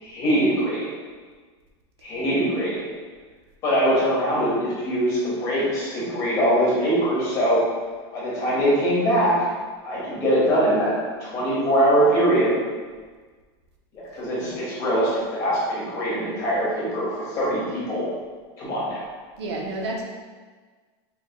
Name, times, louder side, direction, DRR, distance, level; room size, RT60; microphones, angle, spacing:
voice 1, 0.0-0.9 2.0-2.8 3.6-7.6 8.1-9.5 9.8-10.9 11.2-12.5 14.1-18.1 18.6-19.1, equal, 25° left, -7 dB, 1.5 m, -22 dB
voice 2, 19.4-20.0, right 2 dB, 80° right, 0 dB, 0.8 m, -30 dB
5.2 x 3.3 x 2.3 m, 1.5 s
supercardioid pair, 175°, 14 cm